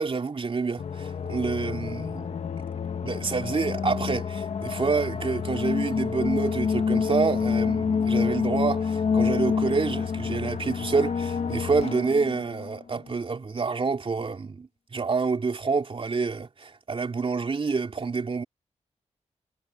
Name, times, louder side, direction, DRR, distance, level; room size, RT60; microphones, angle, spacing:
voice 1, 0.0-2.5 3.0-18.4, right 4 dB, 45° right, 3.0 m, -28 dB
sound 1, 0.8-12.8, left 6 dB, 60° left, 1.0 m, -28 dB
cardioid pair, 75°, 13 cm